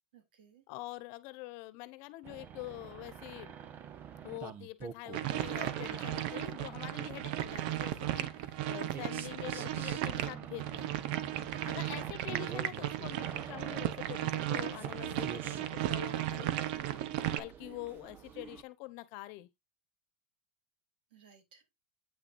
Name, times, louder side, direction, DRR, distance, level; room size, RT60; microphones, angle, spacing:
voice 1, 0.1-0.6 11.4-11.8 16.7-17.1 21.1-21.7, right 9 dB, 90° right, 3.5 m, -59 dB
voice 2, 0.7-3.7 4.2-10.9 11.6-16.5 17.3-19.5, left 19 dB, 65° left, 1.1 m, -45 dB
sound 1, 2.2-18.6, right 8 dB, 40° right, 1.2 m, -47 dB
sound 2, 5.1-17.4, right 12 dB, 70° right, 1.0 m, -35 dB
8.9 x 6.2 x 2.6 m
supercardioid pair, 115°, 5 cm